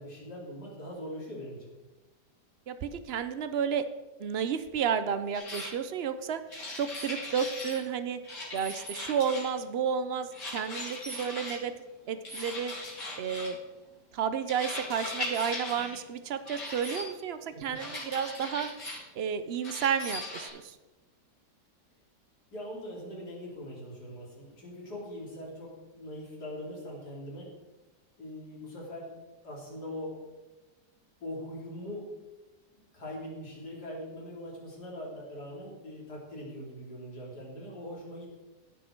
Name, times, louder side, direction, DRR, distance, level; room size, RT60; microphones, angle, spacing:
voice 1, 0.0-1.6 17.5-17.8 22.5-27.5 28.2-29.1 29.4-30.1 31.2-32.1 32.7-38.4, left 1 dB, 70° left, -4 dB, 3.9 m, -41 dB
voice 2, 2.7-3.8 4.2-6.4 6.8-8.2 8.5-11.7 12.1-12.7 13.2-13.6 14.1-18.7 19.2-20.8, right 7 dB, 65° right, 11 dB, 0.6 m, -31 dB
sound 1, 5.3-5.7 6.5-7.8 8.2-9.6 10.3-11.6 12.2-13.6 14.5-16.0 16.5-17.0 17.7-19.0 19.6-20.5, left 2 dB, 85° left, 4.4 m, -39 dB
16.0 x 6.4 x 4.5 m, 1.1 s
omnidirectional pair, 1.8 m